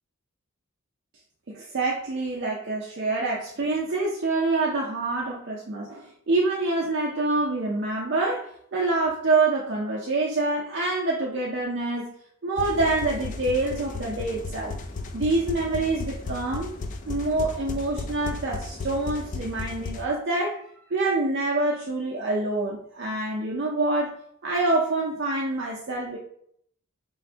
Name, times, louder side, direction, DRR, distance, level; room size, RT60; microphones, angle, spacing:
voice 1, 1.5-12.1 12.4-14.7 15.1-16.7 17.1-20.6 20.9-24.1 24.4-26.2, right 2 dB, 50° right, -2 dB, 0.5 m, -26 dB
sound 1, 12.6-20.0, left 3 dB, 35° left, 0.3 m, -35 dB
3.1 x 2.5 x 4.4 m, 0.68 s
head